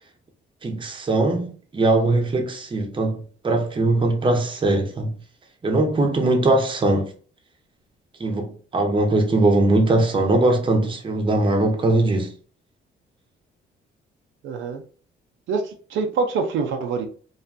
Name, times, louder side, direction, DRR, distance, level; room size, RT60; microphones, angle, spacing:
voice 1, 0.6-5.1 5.6-7.1 8.2-12.3, right 2 dB, 25° right, 0.7 m, -20 dB
voice 2, 14.4-14.8 15.5-17.1, right 4 dB, 75° right, 0.5 m, -25 dB
2.5 x 2.2 x 2.4 m
cardioid pair, 90°, 20 cm